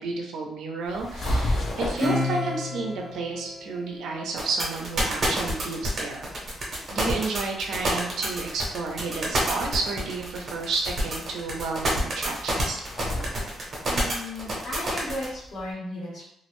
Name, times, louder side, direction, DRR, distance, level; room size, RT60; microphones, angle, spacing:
voice 1, 0.0-6.3 6.9-12.8, right 3 dB, 80° right, 1 dB, 0.5 m, -31 dB
sound 1, 0.9-2.2 5.6-15.7, left 1 dB, 45° left, 0.5 m, -35 dB
Acoustic guitar / Strum, 2.0-4.9, left 2 dB, 5° right, 0.5 m, -32 dB
sound 2, 4.4-15.3, right 1 dB, 35° right, 0.8 m, -27 dB
voice 2, 13.9-16.3, left 1 dB, 75° left, -6 dB, 1.2 m, -35 dB
2.4 x 2.0 x 3.0 m, 0.80 s
cardioid pair, 165°, 0 cm